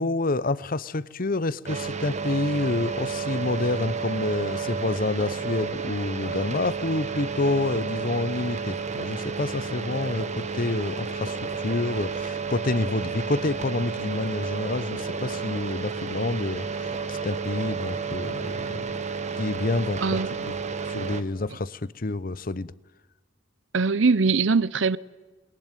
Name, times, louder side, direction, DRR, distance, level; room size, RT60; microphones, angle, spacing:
voice 1, 0.0-18.9 19.4-20.6 20.9-22.7, left 2 dB, 45° left, 0.8 m, -28 dB
sound 1, 1.7-21.2, right 5 dB, 35° right, 1.4 m, -31 dB
voice 2, 20.0-20.3 23.7-25.0, right 4 dB, 70° right, 0.8 m, -21 dB
29.5 x 21.5 x 9.3 m
head